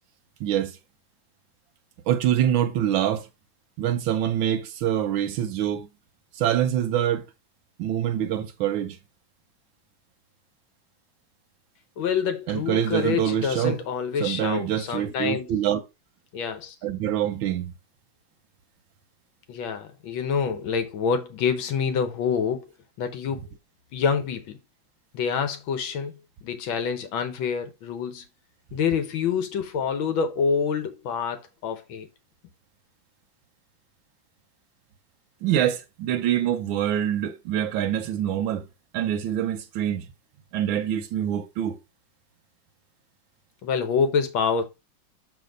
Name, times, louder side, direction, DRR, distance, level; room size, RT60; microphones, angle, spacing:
voice 1, 0.4-0.8 2.1-3.3 3.8-5.9 6.3-7.2 7.8-9.0 12.5-13.8 14.2-15.8 16.8-17.7 35.4-38.7 38.9-40.0 40.5-41.8, right 10 dB, 90° right, 1.5 m, -25 dB
voice 2, 12.0-15.5 16.3-16.8 19.5-22.7 23.0-23.4 23.9-24.6 25.1-26.2 26.4-28.3 28.7-32.1 43.6-44.6, left 6 dB, 90° left, 1.7 m, -27 dB
7.6 x 3.3 x 5.1 m
omnidirectional pair, 2.1 m